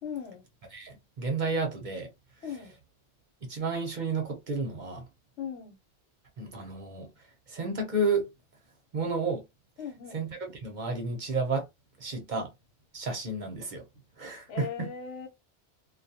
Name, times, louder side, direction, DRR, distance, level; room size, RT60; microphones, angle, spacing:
voice 1, 0.0-0.4 2.4-2.7 5.4-5.8 9.8-10.2 14.5-15.3, left 7 dB, 90° left, 1.2 m, -38 dB
voice 2, 0.7-2.1 3.4-5.1 6.4-7.1 7.5-8.3 8.9-9.4 10.1-10.3 10.6-11.7 12.0-12.5 12.9-13.8 14.2-14.9, right 3 dB, 50° right, 0.7 m, -31 dB
2.3 x 2.2 x 2.7 m
omnidirectional pair, 1.2 m